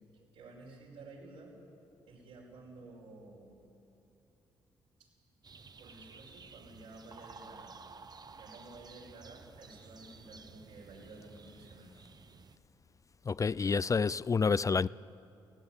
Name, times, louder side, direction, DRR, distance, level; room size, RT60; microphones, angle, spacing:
voice 1, 0.3-1.6 2.1-3.5 5.0-5.1 5.8-7.7 8.4-11.9, right 2 dB, 85° right, 5.3 m, -52 dB
sound 1, 5.4-12.6, right 4 dB, 40° right, 0.9 m, -53 dB
voice 2, 13.3-14.9, left 5 dB, 30° left, 0.3 m, -28 dB
16.5 x 16.0 x 9.6 m
hypercardioid pair, 50°, 11 cm